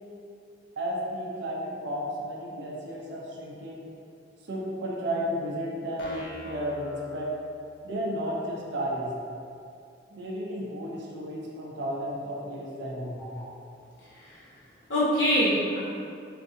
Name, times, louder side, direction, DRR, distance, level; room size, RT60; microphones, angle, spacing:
voice 1, 0.8-3.9 4.5-7.3 7.8-9.1 10.1-13.2, equal, 70° right, -3 dB, 0.5 m, -33 dB
sound 1, 6.0-7.9, equal, 60° left, 0.6 m, -44 dB
voice 2, 14.1-14.5 14.9-15.8, equal, 90° left, -10 dB, 1.0 m, -25 dB
2.6 x 2.5 x 3.7 m, 2.5 s
head